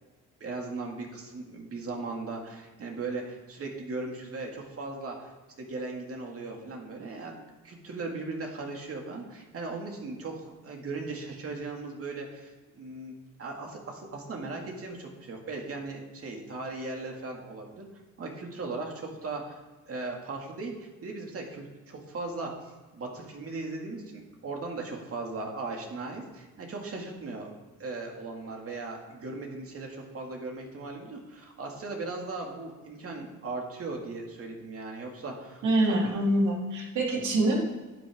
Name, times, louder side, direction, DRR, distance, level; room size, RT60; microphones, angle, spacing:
voice 1, 0.4-5.3 5.6-13.1 13.4-17.9 18.2-19.6 19.9-27.5 27.8-35.6, right 3 dB, 50° right, 1 dB, 2.3 m, -38 dB
voice 2, 35.6-37.6, right 1 dB, 75° right, -1 dB, 2.9 m, -25 dB
12.0 x 7.9 x 3.7 m, 1.2 s
cardioid pair, 90°, 30 cm